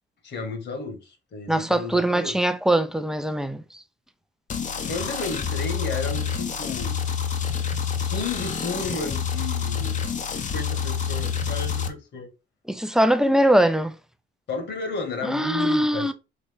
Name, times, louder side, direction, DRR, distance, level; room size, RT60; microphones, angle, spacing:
voice 1, 0.2-2.4 4.8-7.0 8.0-12.3 14.5-16.1, left 3 dB, 65° left, 1.4 m, -33 dB
voice 2, 1.5-3.6 12.7-13.9 15.3-16.1, right 1 dB, 5° right, 0.5 m, -21 dB
sound 1, 4.5-11.9, left 7 dB, 40° left, 0.7 m, -28 dB
4.0 x 3.0 x 3.5 m
cardioid pair, 90°, 20 cm